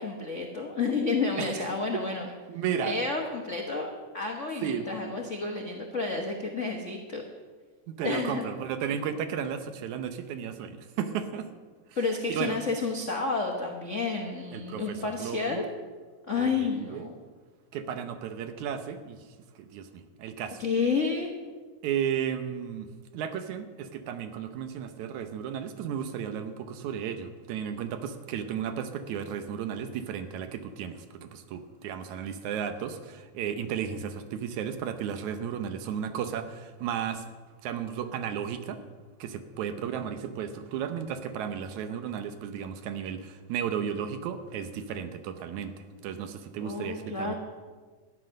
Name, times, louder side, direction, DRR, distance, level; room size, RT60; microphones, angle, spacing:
voice 1, 0.0-2.3 2.8-7.2 8.0-8.4 11.9-15.7 16.3-17.1 20.6-21.3 46.6-47.3, left 4 dB, 75° left, 1 dB, 0.7 m, -30 dB
voice 2, 2.5-3.0 4.6-4.9 7.9-11.5 11.9-12.0 12.3-12.6 14.5-15.7 16.4-17.1 17.7-19.2 19.6-20.6 21.8-37.3 37.6-38.8 39.2-47.4, right 8 dB, 75° right, 9 dB, 2.2 m, -34 dB
13.5 x 9.9 x 6.4 m, 1.4 s
omnidirectional pair, 3.5 m